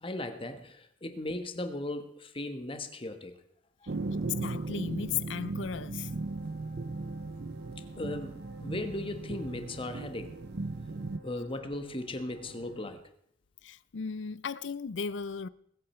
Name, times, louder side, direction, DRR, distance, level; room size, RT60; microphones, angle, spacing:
voice 1, 0.0-3.4 8.0-10.4 11.2-13.0, left 1 dB, 30° left, 1.4 m, -37 dB
sound 1, 3.9-11.2, right 3 dB, 60° right, 0.7 m, -37 dB
voice 2, 4.1-6.1 13.6-15.5, left 6 dB, 75° left, 0.5 m, -36 dB
sound 2, 6.0-12.9, equal, 80° right, 5.7 m, -53 dB
21.0 x 8.8 x 4.4 m
head